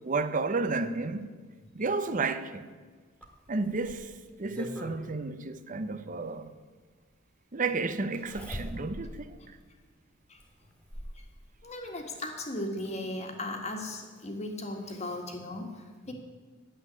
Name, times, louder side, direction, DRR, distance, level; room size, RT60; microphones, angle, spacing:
voice 1, 0.0-1.3 1.7-2.6 3.5-4.0 4.4-6.5 7.5-9.4, right 3 dB, 45° right, 0.7 m, -31 dB
Zipper (clothing), 3.2-5.0 6.4-6.5 8.1-9.1 9.6-9.7 10.4-11.2 12.4-12.5 12.8-12.9, equal, 5° left, 1.9 m, -42 dB
voice 2, 11.6-16.1, left 1 dB, 35° left, 1.7 m, -37 dB
9.9 x 7.7 x 9.6 m
head